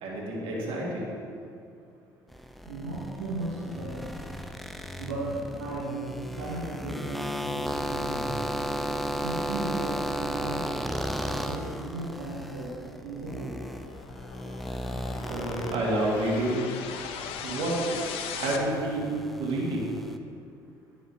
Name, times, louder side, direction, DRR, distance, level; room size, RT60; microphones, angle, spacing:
voice 1, 0.0-1.1 15.3-16.7 17.4-18.0 18.3-19.9, right 1 dB, 65° right, -3 dB, 2.0 m, -29 dB
sound 1, 2.3-16.5 16.8-20.2, equal, ahead, 0.5 m, -35 dB
voice 2, 2.6-4.1 5.0-8.3 9.2-10.6 11.3-12.8 13.0-13.5, right 2 dB, 90° right, -7 dB, 1.0 m, -36 dB
sound 2, 12.1-18.6, left 7 dB, 65° left, 0.6 m, -40 dB
10.5 x 6.6 x 2.9 m, 2.3 s
hypercardioid pair, 55°, 10 cm